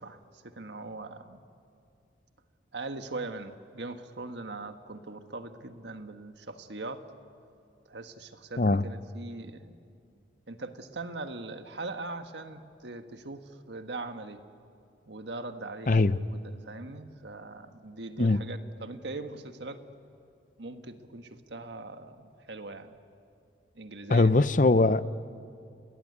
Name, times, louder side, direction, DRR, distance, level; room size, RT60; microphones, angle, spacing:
voice 1, 0.0-1.4 2.7-7.0 7.9-9.8 10.5-14.4 15.1-19.8 20.6-23.0 23.7-24.3, right 2 dB, 80° right, 1.5 m, -41 dB
voice 2, 15.9-16.2 18.2-18.4 24.1-25.2, left 2 dB, 45° left, 0.6 m, -22 dB
29.5 x 19.5 x 9.8 m
head